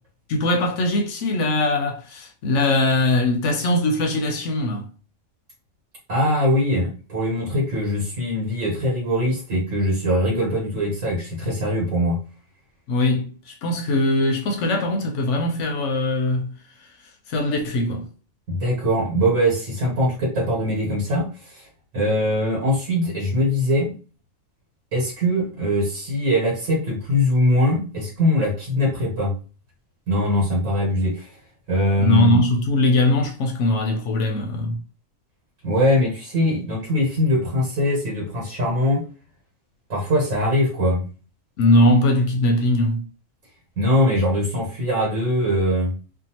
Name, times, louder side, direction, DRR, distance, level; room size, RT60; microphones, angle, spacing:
voice 1, 0.3-4.9 12.9-16.5 17.3-18.0 32.0-34.8 41.6-43.1, left 1 dB, 70° left, 0.8 m, -21 dB
voice 2, 6.1-12.2 18.5-21.7 21.9-23.9 24.9-29.3 30.1-31.3 31.7-32.4 35.6-39.0 39.9-41.0 43.8-45.9, left 1 dB, 70° right, 1.4 m, -22 dB
2.6 x 2.4 x 2.8 m
omnidirectional pair, 1.4 m